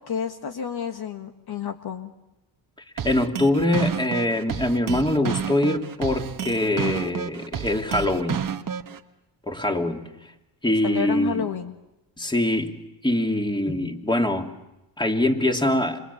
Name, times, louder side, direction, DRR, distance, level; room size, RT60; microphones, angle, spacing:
voice 1, 0.1-2.1 10.8-11.8, left 7 dB, 50° left, 6 dB, 1.6 m, -30 dB
voice 2, 3.0-8.5 9.5-10.1 10.6-11.5 12.2-12.8 13.0-14.5 15.0-16.0, left 1 dB, 10° left, 3 dB, 2.9 m, -23 dB
sound 1, 3.0-9.0, right 8 dB, 40° right, 1.4 m, -30 dB
30.0 x 26.5 x 7.2 m, 0.94 s
cardioid pair, 80°, 47 cm